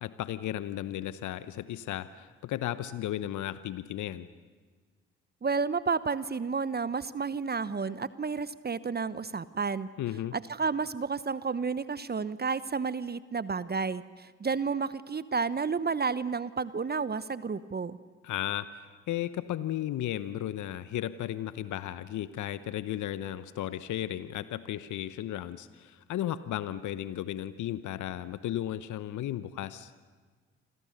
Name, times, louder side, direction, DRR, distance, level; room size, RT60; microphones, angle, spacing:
voice 1, 0.0-4.3 10.0-10.4 18.2-29.9, left 12 dB, 60° left, 14 dB, 1.0 m, -35 dB
voice 2, 5.4-9.9 10.3-18.0, right 5 dB, 30° right, 16 dB, 1.0 m, -31 dB
28.0 x 26.5 x 6.7 m, 1.5 s
hypercardioid pair, 45°, 34 cm